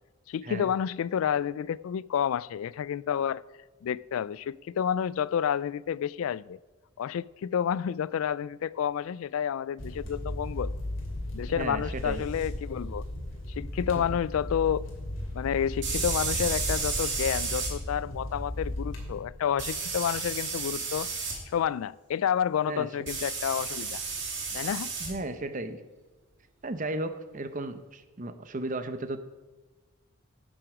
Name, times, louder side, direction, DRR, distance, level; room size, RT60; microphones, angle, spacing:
voice 1, 0.3-3.4 3.8-6.6 7.0-10.7 11.3-13.0 13.5-14.9 15.3-21.1 21.5-24.0 24.5-24.9, left 8 dB, 80° left, 0.3 m, -30 dB
sound 1, 9.8-19.2, left 1 dB, 65° left, 2.5 m, -36 dB
voice 2, 11.5-12.2 13.8-14.0 22.6-22.9 25.0-25.8 26.6-29.2, right 2 dB, 40° right, 0.7 m, -35 dB
sound 2, 12.4-12.5 15.8-17.7 19.6-21.4 23.1-25.1, right 4 dB, 55° right, 2.7 m, -32 dB
11.0 x 7.7 x 4.9 m
head